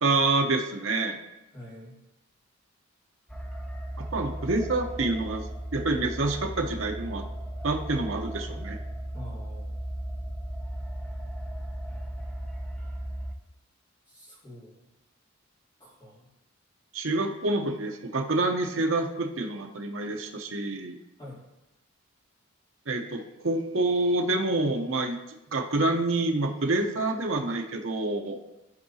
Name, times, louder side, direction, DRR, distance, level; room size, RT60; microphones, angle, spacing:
voice 1, 0.0-1.2 4.0-5.4 5.7-7.3 7.6-8.8 16.9-21.0 22.9-25.2 25.5-28.4, right 2 dB, 65° right, 3 dB, 0.8 m, -27 dB
voice 2, 1.5-2.0 9.1-9.8 14.1-14.9 15.8-16.3 21.2-21.4, equal, 25° left, -9 dB, 3.0 m, -46 dB
sound 1, 3.3-13.3, right 1 dB, 5° left, 0.6 m, -36 dB
13.5 x 4.7 x 2.8 m, 0.95 s
head